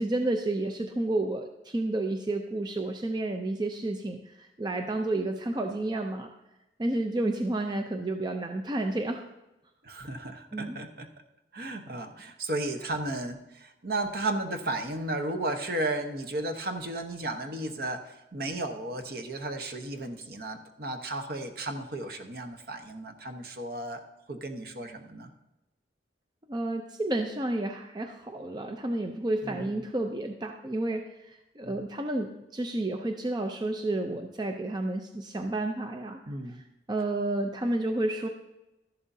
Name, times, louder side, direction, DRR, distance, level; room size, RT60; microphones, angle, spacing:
voice 1, 0.0-6.3 6.8-9.2 10.5-10.8 26.5-36.2 36.5-38.3, right 2 dB, 25° right, 5 dB, 0.5 m, -31 dB
voice 2, 9.8-11.1 11.5-24.0 24.3-25.3 29.4-29.7 31.6-31.8 36.3-36.6, right 2 dB, 55° right, 6 dB, 1.0 m, -34 dB
13.0 x 11.0 x 2.7 m, 0.97 s
head